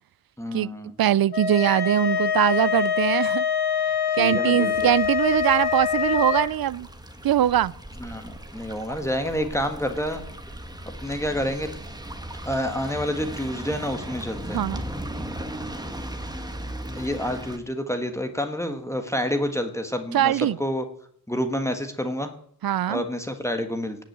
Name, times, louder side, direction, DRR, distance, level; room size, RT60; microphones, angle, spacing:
voice 1, 0.4-0.9 4.2-4.7 8.0-10.2 11.0-11.7 12.4-14.6 16.9-20.8 21.3-22.3 22.9-24.0, equal, 5° left, 1.4 m, -28 dB
voice 2, 1.0-3.4 4.2-6.9 7.2-7.7 14.5-14.8 20.1-20.6 22.6-23.0, right 11 dB, 65° right, 0.5 m, -22 dB
sound 1, 1.3-6.5, left 7 dB, 85° left, 1.8 m, -24 dB
sound 2, 4.7-17.6, right 1 dB, 10° right, 1.3 m, -37 dB
17.5 x 6.2 x 9.2 m
wide cardioid pair, 135°, 39 cm